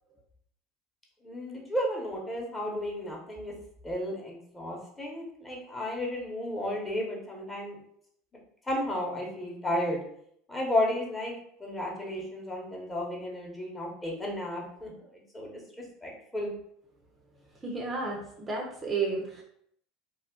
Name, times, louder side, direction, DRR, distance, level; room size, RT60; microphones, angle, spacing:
voice 1, 1.2-3.5 3.8-7.8 8.7-10.0 10.5-11.3 11.6-15.5 16.0-16.5, left 1 dB, 15° left, -2 dB, 1.0 m, -33 dB
voice 2, 17.6-19.4, right 4 dB, 20° right, -2 dB, 0.6 m, -32 dB
2.3 x 2.1 x 3.6 m, 0.68 s
hypercardioid pair, 85°, 0 cm